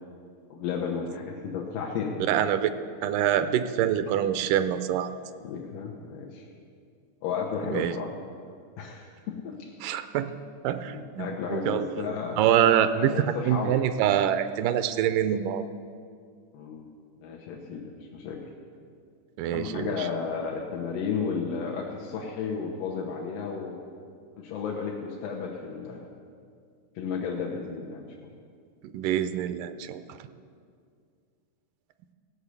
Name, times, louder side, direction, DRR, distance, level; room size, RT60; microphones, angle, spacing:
voice 1, 0.5-2.2 3.4-3.5 5.4-6.4 7.2-8.1 8.8-9.7 10.9-12.4 12.9-13.8 16.5-16.9 17.2-18.4 19.5-23.8 24.4-26.1 27.0-28.0, left 6 dB, 85° left, -2 dB, 2.7 m, -33 dB
voice 2, 2.3-2.7 3.0-5.1 7.6-8.0 9.8-10.3 10.6-12.1 12.4-13.2 13.5-15.6 19.4-20.1 28.9-30.0, right 10 dB, 80° right, 11 dB, 2.1 m, -25 dB
16.5 x 6.2 x 8.2 m, 2.2 s
omnidirectional pair, 3.7 m